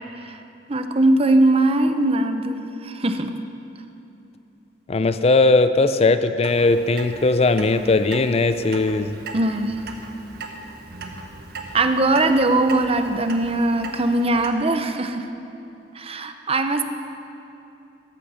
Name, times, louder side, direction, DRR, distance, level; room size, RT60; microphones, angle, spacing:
voice 1, 0.7-3.3 9.3-9.8 11.7-15.3 15.9-16.8, right 2 dB, 35° right, 8 dB, 0.7 m, -20 dB
voice 2, 4.9-9.2, left 3 dB, 35° left, 11 dB, 0.5 m, -18 dB
Clock, 6.4-14.5, right 3 dB, 60° right, 1.4 m, -38 dB
14.0 x 13.5 x 5.6 m, 2.8 s
head